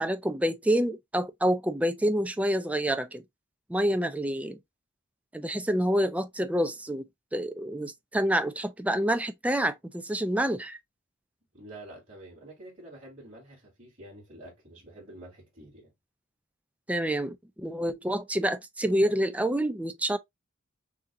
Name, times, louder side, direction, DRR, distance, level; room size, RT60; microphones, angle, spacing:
voice 1, 0.0-3.2 3.7-4.6 5.3-7.1 7.3-10.8 16.9-20.2, right 1 dB, 5° right, 0.4 m, -27 dB
voice 2, 11.5-15.9, right 1 dB, 40° right, 3.4 m, -48 dB
6.1 x 2.8 x 2.5 m
head